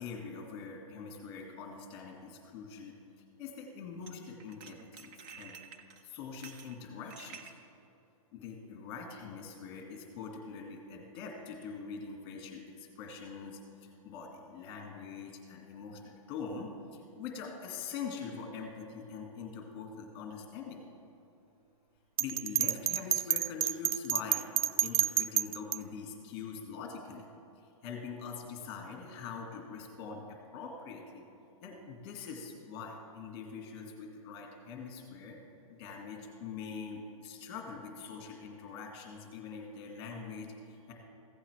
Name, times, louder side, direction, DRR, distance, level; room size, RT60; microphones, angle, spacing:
voice 1, 0.0-3.0 3.4-5.6 6.0-7.5 8.3-20.8 22.2-27.3 27.6-31.3 31.6-35.4 35.7-40.9, left 5 dB, 25° left, 2 dB, 1.9 m, -44 dB
sound 1, 1.8-1.9 4.0-4.1 4.4-7.5, right 6 dB, 20° right, 0.5 m, -51 dB
Bell, 22.2-25.8, right 10 dB, 85° right, 0.4 m, -29 dB
15.5 x 8.4 x 3.3 m, 2.8 s
hypercardioid pair, 155°, 18 cm